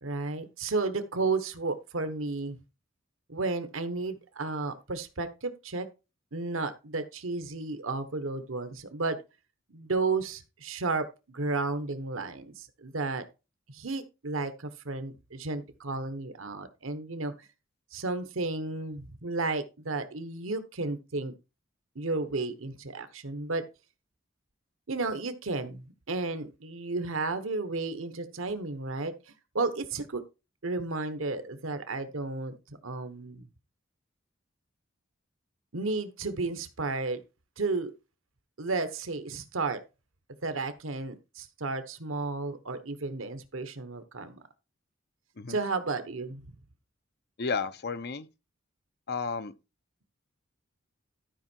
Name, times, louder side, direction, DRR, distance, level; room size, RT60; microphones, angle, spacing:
voice 1, 0.0-2.6 3.3-5.9 6.3-9.2 9.7-13.2 13.7-17.5 17.9-21.3 21.9-23.6 24.9-29.1 29.5-30.2 30.6-32.5 32.8-33.5 35.7-37.2 37.6-37.9 38.6-39.8 40.4-44.4 45.5-46.4, right 3 dB, 80° right, 1.2 m, -33 dB
voice 2, 47.4-48.3 49.1-49.5, left 4 dB, 55° left, 0.8 m, -32 dB
13.0 x 5.5 x 4.5 m
head